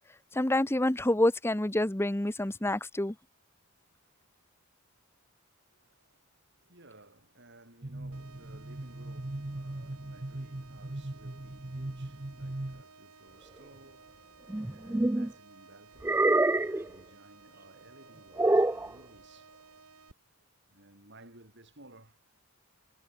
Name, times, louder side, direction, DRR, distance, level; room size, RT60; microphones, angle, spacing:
voice 1, 0.3-3.1, left 1 dB, 10° left, 0.7 m, -27 dB
voice 2, 5.7-19.5 20.6-22.3, right 2 dB, 50° right, 7.4 m, -57 dB
sound 1, 7.8-12.8, right 1 dB, 35° right, 1.0 m, -39 dB
sound 2, 8.1-20.1, right 4 dB, 90° right, 4.0 m, -56 dB
sound 3, 14.5-15.3 16.0-16.9 18.4-18.9, right 2 dB, 10° right, 0.4 m, -25 dB
head